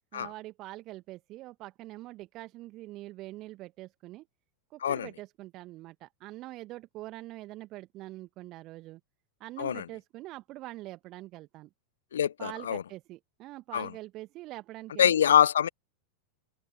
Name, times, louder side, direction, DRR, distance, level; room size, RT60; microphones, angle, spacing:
voice 1, 0.1-4.3 4.7-9.0 9.4-11.7 12.4-15.2, right 17 dB, 40° right, 1.6 m, -44 dB
voice 2, 12.1-12.8 13.7-13.9 15.0-15.7, left 9 dB, 65° left, 0.6 m, -24 dB
figure-of-eight pair, 90°, 0 cm